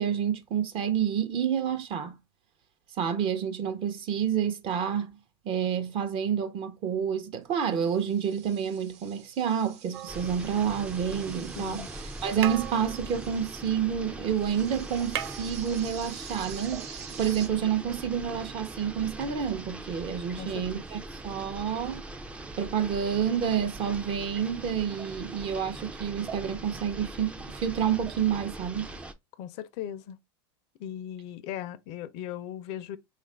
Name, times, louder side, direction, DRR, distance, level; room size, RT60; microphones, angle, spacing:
voice 1, 0.0-2.2 3.0-5.1 5.4-11.8 12.2-22.0 22.6-28.9, right 8 dB, 40° right, 0.7 m, -29 dB
sound 1, 7.6-13.7 14.3-17.5, right 7 dB, 60° right, 1.0 m, -47 dB
sound 2, 9.9-11.1 12.0-12.1 12.4-14.3 14.5-14.6 14.9-16.2 17.4-17.5, right 11 dB, 80° right, 0.5 m, -38 dB
sound 3, 10.1-29.1, right 2 dB, 10° right, 0.4 m, -41 dB
voice 2, 11.6-11.9 20.4-20.8 29.4-30.2 30.8-33.0, left 10 dB, 55° left, 0.5 m, -38 dB
3.6 x 2.4 x 3.2 m
supercardioid pair, 115°, 13 cm